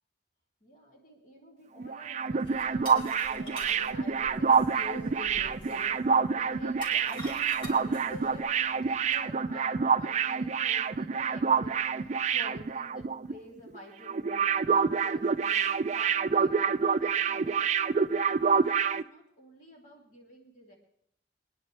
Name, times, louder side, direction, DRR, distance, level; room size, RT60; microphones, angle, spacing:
voice 1, 0.6-17.7 18.3-20.8, left 1 dB, 45° left, -2 dB, 3.2 m, -49 dB
sound 1, 1.8-13.3 13.6-13.8 14.1-19.0, right 6 dB, 40° right, 0.4 m, -27 dB
sound 2, 2.5-9.2, equal, 30° left, 3.7 m, -47 dB
sound 3, 2.8-9.1, left 1 dB, 70° left, 2.1 m, -53 dB
23.5 x 10.0 x 3.4 m, 0.72 s
head